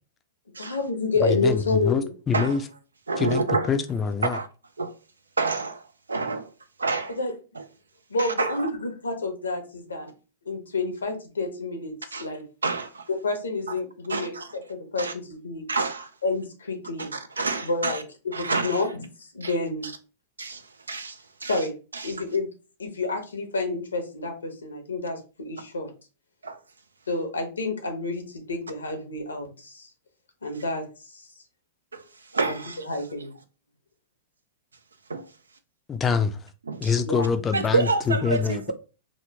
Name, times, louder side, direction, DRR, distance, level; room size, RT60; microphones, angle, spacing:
voice 1, 0.6-2.1 7.2-7.3 8.1-10.1 10.5-11.9 12.2-12.4 13.1-15.6 16.2-17.1 17.6-18.0 18.4-18.9 19.3-19.9 21.5-21.7 22.0-22.5 22.8-25.9 27.1-29.9 30.4-30.8 31.1-31.2 32.4-32.5 32.9-33.3 37.0-37.3, left 3 dB, 90° left, 0.8 m, -29 dB
voice 2, 1.2-2.6 3.2-4.4 35.9-36.5 36.8-38.7, left 6 dB, 20° left, 0.4 m, -25 dB
voice 3, 3.1-3.7 4.3-4.5 4.8-4.9 5.4-6.5 6.8-7.2 7.5-7.6 8.2-8.7 12.1-12.3 12.6-13.1 14.1-14.6 15.0-15.1 15.7-16.1 17.0-18.0 18.3-18.9 19.4-19.5 19.8-19.9 20.4-21.6 21.9-22.2 26.4-26.6 31.9-33.0 35.1-35.3 36.7-37.0 37.5-38.7, right 3 dB, 90° right, 0.4 m, -29 dB
2.9 x 2.1 x 3.3 m
hypercardioid pair, 110°, 0 cm